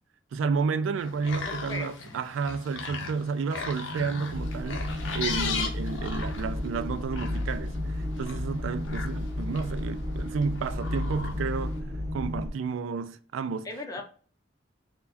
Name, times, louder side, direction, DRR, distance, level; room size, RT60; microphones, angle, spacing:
voice 1, 0.3-11.8 12.1-13.7, right 5 dB, 85° right, 0.3 m, -31 dB
sound 1, 1.0-11.8, left 4 dB, 85° left, 0.7 m, -38 dB
voice 2, 1.5-2.0 5.5-5.7 13.6-14.0, left 2 dB, 20° left, 0.6 m, -37 dB
sound 2, 4.3-12.5, left 1 dB, 60° right, 1.6 m, -32 dB
4.5 x 2.2 x 2.5 m
head